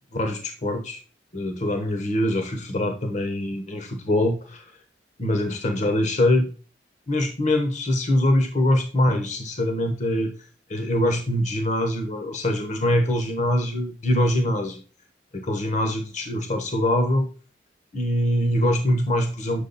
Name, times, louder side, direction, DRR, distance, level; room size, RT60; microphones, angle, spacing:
voice 1, 0.1-1.0 1.3-4.7 5.2-6.5 7.1-10.3 10.7-14.8 15.3-17.3 17.9-19.6, left 1 dB, 40° left, 5 dB, 1.2 m, -23 dB
8.3 x 6.2 x 4.2 m, 0.37 s
head